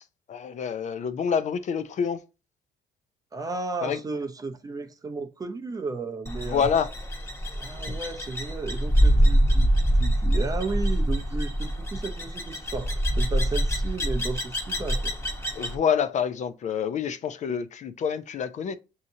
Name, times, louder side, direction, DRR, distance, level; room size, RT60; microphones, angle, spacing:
voice 1, 0.3-2.2 3.8-4.0 6.5-6.9 15.5-18.7, left 7 dB, 45° left, 0.4 m, -27 dB
voice 2, 3.3-6.7 7.6-15.1, right 3 dB, 20° right, 0.6 m, -34 dB
sound 1, 6.3-15.8, equal, 15° left, 1.0 m, -25 dB
6.2 x 2.8 x 2.7 m
cardioid pair, 110°, 17 cm